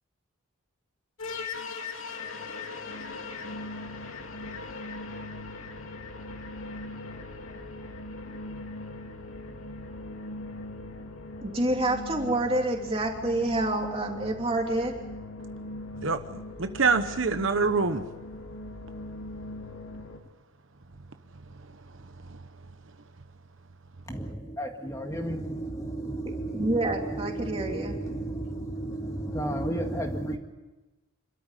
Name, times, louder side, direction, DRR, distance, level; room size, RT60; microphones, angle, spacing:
sound 1, 1.2-20.2, left 2 dB, 75° left, 2.7 m, -40 dB
voice 1, 11.4-14.9 26.5-28.0, right 1 dB, 25° right, 2 dB, 3.1 m, -28 dB
voice 2, 16.0-18.0, right 4 dB, 65° right, 8 dB, 1.1 m, -25 dB
voice 3, 24.1-30.4, right 1 dB, 15° left, 3 dB, 1.9 m, -33 dB
26.5 x 13.5 x 10.0 m, 1.1 s
head